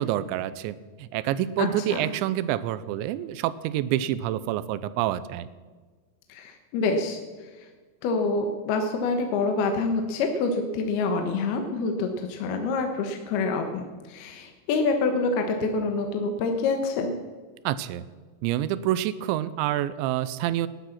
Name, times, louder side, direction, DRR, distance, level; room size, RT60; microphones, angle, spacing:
voice 1, 0.0-5.5 17.7-18.1 18.4-20.7, right 13 dB, 85° right, 16 dB, 3.0 m, -27 dB
voice 2, 1.6-2.1 6.3-7.5 8.0-17.1, left 3 dB, 70° left, 4 dB, 2.9 m, -27 dB
18.5 x 11.5 x 5.9 m, 1.4 s
omnidirectional pair, 5.2 m